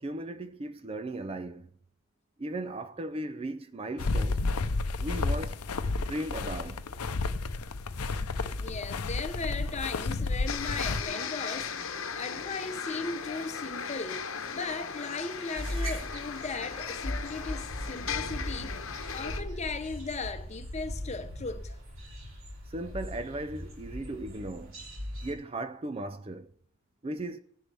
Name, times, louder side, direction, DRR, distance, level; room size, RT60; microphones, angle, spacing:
voice 1, 0.0-1.7 2.4-4.4 5.0-5.6 6.0-6.8 22.7-24.8 25.2-26.5 27.0-27.4, right 1 dB, 25° right, 0.4 m, -37 dB
sound 1, 4.0-11.0, left 3 dB, 85° left, 0.7 m, -31 dB
voice 2, 8.6-18.8 19.1-21.8, left 4 dB, 30° left, 0.8 m, -37 dB
sound 2, 10.5-19.4, left 6 dB, 65° left, 1.0 m, -37 dB
sound 3, 15.6-25.3, equal, 60° right, 3.3 m, -39 dB
18.0 x 10.0 x 3.4 m
head